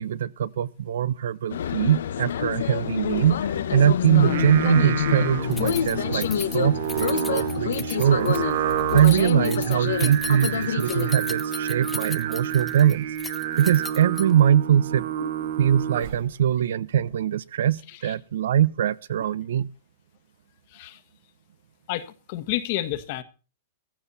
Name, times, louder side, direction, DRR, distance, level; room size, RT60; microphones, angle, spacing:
voice 1, 0.0-8.6 8.9-15.0 15.6-19.7, right 10 dB, 75° right, 0.9 m, -22 dB
sound 1, 1.5-11.1, left 9 dB, 90° left, 1.3 m, -27 dB
Singing, 4.1-16.3, right 10 dB, 50° right, 1.5 m, -30 dB
Keys jangling, 5.5-14.5, left 3 dB, 5° left, 0.8 m, -37 dB
voice 2, 21.9-23.2, left 14 dB, 40° left, 1.5 m, -30 dB
15.5 x 15.0 x 4.2 m
supercardioid pair, 175°, 0 cm